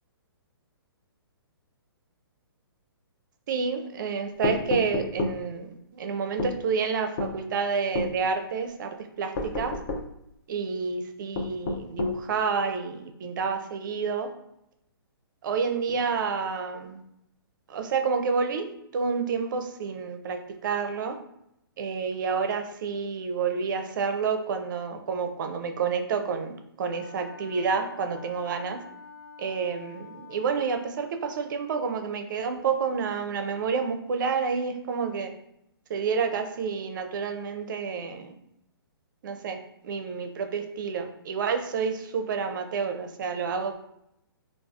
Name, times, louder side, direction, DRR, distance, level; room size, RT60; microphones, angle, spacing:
voice 1, 3.5-5.7 5.9-9.8 10.5-14.3 15.4-17.0 17.7-21.2 21.8-28.8 29.4-35.3 35.9-38.3 39.2-43.8, right 5 dB, 55° right, 6 dB, 0.4 m, -29 dB
sound 1, 4.4-5.4 6.4-6.6 7.2-7.4 7.9-8.1 9.3-10.1 11.3-12.2, left 2 dB, 40° left, 0.5 m, -29 dB
Wind instrument woodwind instrument, 26.9-31.1, left 5 dB, 80° left, 0.8 m, -47 dB
3.4 x 2.4 x 2.3 m, 0.79 s
hypercardioid pair, 140°, 13 cm